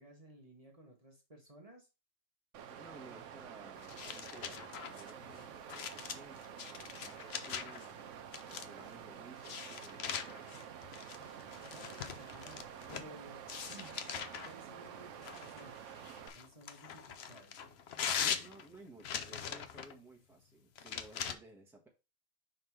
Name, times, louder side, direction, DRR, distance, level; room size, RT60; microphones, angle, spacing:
voice 1, 0.0-1.9 10.9-11.0 11.3-12.6 12.9-13.4 13.7-14.0 14.4-15.9 16.3-17.8, right 2 dB, 30° right, 1.5 m, -56 dB
Water, 2.5-16.3, right 8 dB, 70° right, 1.0 m, -49 dB
voice 2, 2.7-8.0 8.4-10.6 18.2-21.9, right 2 dB, ahead, 1.3 m, -57 dB
sound 1, 3.8-7.9 8.3-8.9 9.4-13.1 13.5-14.5 15.2-19.9 20.7-21.3, left 7 dB, 60° left, 0.9 m, -41 dB
5.5 x 3.9 x 4.7 m
omnidirectional pair, 1.4 m